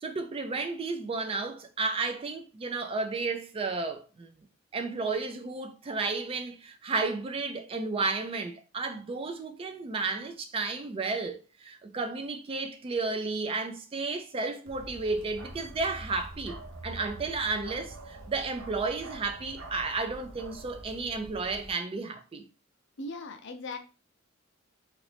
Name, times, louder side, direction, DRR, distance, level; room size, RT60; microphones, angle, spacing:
voice 1, 0.0-4.3 4.7-22.4, right 3 dB, 25° right, 0.3 m, -32 dB
Bark, 14.7-21.7, right 2 dB, 70° right, 0.6 m, -45 dB
voice 2, 23.0-23.8, left 2 dB, 60° left, 0.6 m, -38 dB
3.0 x 2.5 x 3.3 m
head